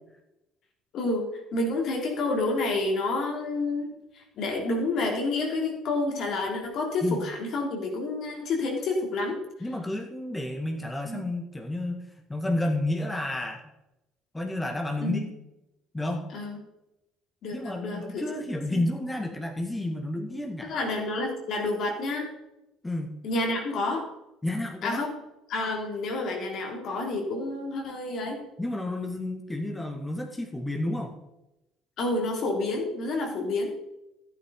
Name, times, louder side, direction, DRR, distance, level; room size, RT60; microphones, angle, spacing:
voice 1, 0.9-9.4 11.1-11.2 15.0-15.3 16.3-16.6 17.4-18.3 18.7-18.8 20.7-22.3 23.2-24.1 24.8-25.1 25.5-28.4 32.0-33.7, left 2 dB, 55° left, 1 dB, 3.2 m, -29 dB
voice 2, 9.6-12.0 12.3-13.6 14.3-15.2 15.9-16.3 17.5-20.7 22.8-23.1 24.4-25.0 28.6-31.1, left 1 dB, 15° left, 2 dB, 2.2 m, -31 dB
14.5 x 8.9 x 4.0 m, 0.90 s
hypercardioid pair, 55°, 0 cm